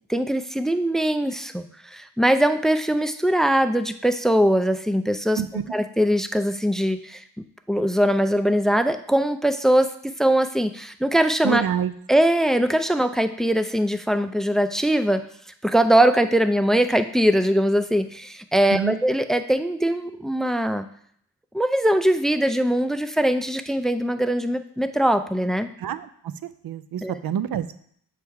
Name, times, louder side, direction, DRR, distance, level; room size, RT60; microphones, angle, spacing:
voice 1, 0.1-1.6 1.9-5.4 5.7-7.2 7.7-11.6 12.1-15.2 15.6-20.9 21.5-25.7 27.0-27.2, right 1 dB, ahead, 9 dB, 0.3 m, -21 dB
voice 2, 11.4-11.9 18.7-19.0 25.8-27.8, right 9 dB, 65° right, 14 dB, 0.5 m, -27 dB
6.9 x 3.3 x 4.6 m, 0.63 s
cardioid pair, 60°, 39 cm